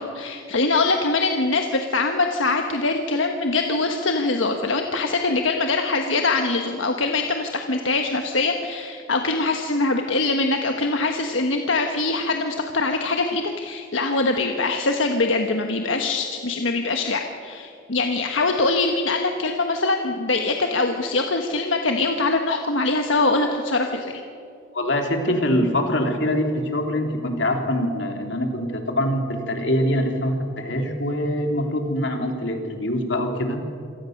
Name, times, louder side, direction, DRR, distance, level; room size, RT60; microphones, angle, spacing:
voice 1, 0.0-24.2, left 3 dB, 90° left, 4 dB, 1.4 m, -23 dB
voice 2, 24.7-33.6, left 1 dB, 70° left, 3 dB, 3.2 m, -24 dB
27.0 x 18.5 x 6.6 m, 2.5 s
head